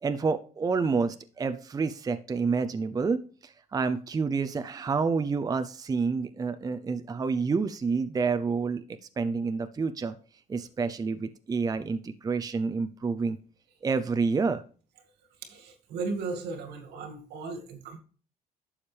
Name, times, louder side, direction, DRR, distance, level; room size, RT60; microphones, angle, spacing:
voice 1, 0.0-8.8 9.2-10.1 10.5-13.4 13.8-14.6, right 4 dB, 20° right, 10 dB, 0.6 m, -28 dB
voice 2, 15.4-18.0, right 3 dB, 80° right, 5 dB, 2.2 m, -36 dB
11.5 x 7.2 x 3.4 m, 0.41 s
cardioid pair, 110°, 17 cm